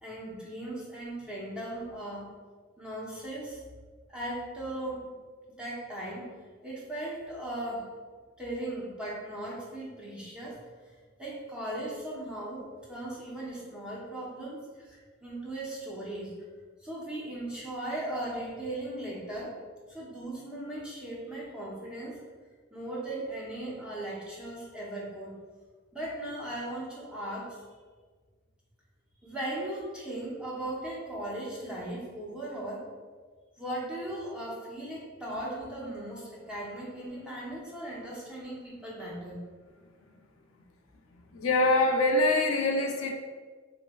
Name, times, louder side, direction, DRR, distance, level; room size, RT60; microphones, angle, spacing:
voice 1, 0.0-2.3 2.8-3.6 4.1-5.1 5.5-6.3 6.6-7.9 8.4-10.6 11.2-16.3 16.8-19.6 19.9-22.2 22.7-25.3 25.9-27.6 29.2-32.9 33.6-39.4, right 1 dB, 5° right, -6 dB, 0.7 m, -38 dB
voice 2, 41.1-43.1, left 2 dB, 85° left, 3 dB, 0.4 m, -25 dB
3.1 x 3.1 x 2.2 m, 1.5 s
head